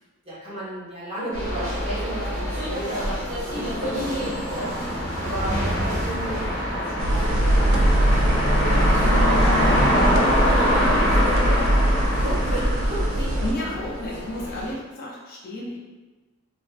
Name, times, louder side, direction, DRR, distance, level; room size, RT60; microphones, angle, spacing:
voice 1, 0.2-7.1 7.4-11.6 12.2-13.2, right 1 dB, 25° right, -10 dB, 0.9 m, -35 dB
sound 1, 1.3-14.7, equal, 90° right, 1.2 m, -31 dB
sound 2, 3.5-13.7, equal, 65° left, 0.9 m, -24 dB
sound 3, 7.0-13.5, right 1 dB, 75° right, 0.4 m, -21 dB
voice 2, 13.4-15.8, left 1 dB, 45° left, -5 dB, 0.4 m, -32 dB
2.6 x 2.4 x 2.4 m, 1.3 s
head